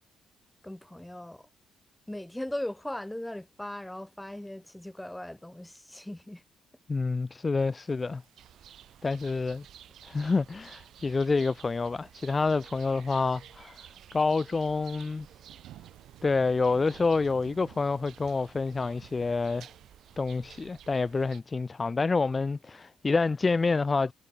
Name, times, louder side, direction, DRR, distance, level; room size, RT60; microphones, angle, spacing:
voice 1, 0.6-1.5 2.1-6.4, left 1 dB, 5° left, 1.6 m, -38 dB
voice 2, 6.9-8.2 9.0-9.6 10.0-13.9 14.1-15.3 16.2-19.7 20.2-24.1, left 4 dB, 30° left, 0.7 m, -28 dB
sound 1, 7.6-19.9, right 14 dB, 85° right, 7.2 m, -57 dB
sound 2, 8.4-21.4, right 10 dB, 70° right, 7.5 m, -53 dB
cardioid pair, 90°, 0 cm